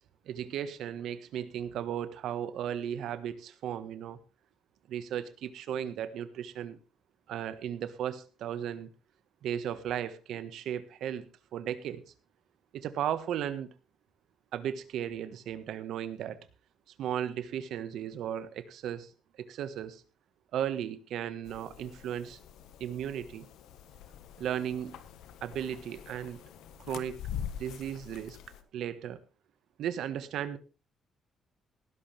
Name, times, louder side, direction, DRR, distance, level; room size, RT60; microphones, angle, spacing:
voice 1, 0.3-4.2 4.9-6.8 7.3-8.9 9.4-11.3 11.5-12.0 12.7-13.7 14.5-16.4 17.0-19.1 19.4-20.0 20.5-22.4 22.8-23.5 24.4-25.0 25.4-26.4 26.9-27.2 27.5-28.4 28.7-29.2 29.8-30.6, right 10 dB, 80° right, 12 dB, 1.4 m, -35 dB
sound 1, 21.4-28.6, left 9 dB, 85° left, 1.5 m, -45 dB
18.5 x 11.5 x 3.4 m, 0.32 s
cardioid pair, 90°, 0 cm